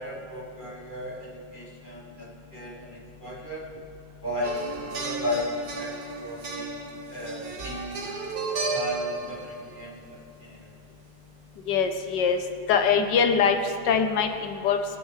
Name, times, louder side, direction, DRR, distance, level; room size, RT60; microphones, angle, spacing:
voice 1, 0.0-3.6 4.2-5.5 5.8-8.1 8.7-10.7, left 1 dB, 30° right, -5 dB, 1.6 m, -35 dB
sound 1, 4.4-10.1 11.9-12.0, right 3 dB, 60° right, 1.8 m, -34 dB
voice 2, 11.7-12.4 12.7-13.6 13.9-14.8, left 6 dB, 80° left, 6 dB, 1.6 m, -22 dB
23.5 x 9.4 x 3.3 m, 2.6 s
omnidirectional pair, 1.9 m